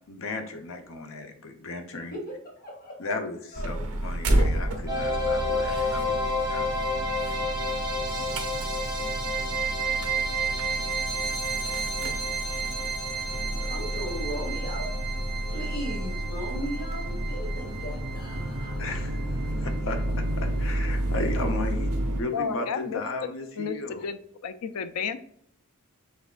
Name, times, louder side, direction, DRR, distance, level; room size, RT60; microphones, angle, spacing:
voice 1, 0.1-2.1 3.0-3.4 3.6-6.6 18.8-20.0 20.4-21.9 22.2-24.0, left 2 dB, 65° left, 5 dB, 0.8 m, -35 dB
voice 2, 2.1-3.2 3.5-3.8 13.6-15.0 15.4-18.8, equal, 45° left, -2 dB, 1.6 m, -37 dB
sound 1, 3.6-22.2, right 1 dB, 70° right, 0.8 m, -31 dB
sound 2, 4.9-19.8, right 1 dB, 20° right, 1.5 m, -31 dB
voice 3, 22.3-23.0 23.6-25.2, left 6 dB, 90° left, 12 dB, 0.4 m, -32 dB
5.9 x 3.5 x 2.4 m, 0.67 s
head